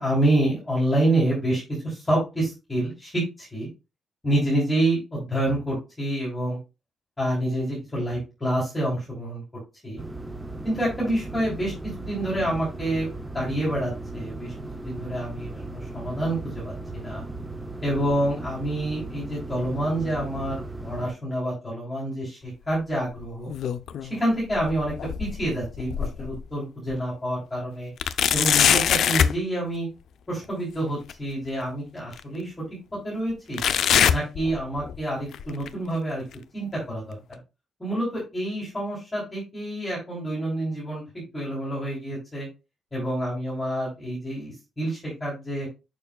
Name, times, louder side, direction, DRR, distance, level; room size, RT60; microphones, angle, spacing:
voice 1, 0.0-3.7 4.2-6.6 7.2-9.4 9.8-10.0 10.6-13.1 13.3-14.5 14.8-17.2 17.8-23.5 24.1-24.9 25.2-27.9 28.3-29.9 30.3-32.6 33.0-33.6 34.1-36.2 36.5-37.4 37.8-42.5 42.9-45.7, right 1 dB, 15° left, -6 dB, 3.2 m, -27 dB
sound 1, 10.0-21.1, right 2 dB, 10° right, 0.6 m, -37 dB
sound 2, 23.2-24.1 24.5-26.4 26.9-27.0 28.0-29.4 31.1-31.2 32.1-32.2 33.6-35.0 35.3-35.7 36.3-36.4 37.3-37.4, left 9 dB, 70° left, 0.5 m, -23 dB
6.9 x 6.2 x 2.3 m, 0.28 s
cardioid pair, 155°, 0 cm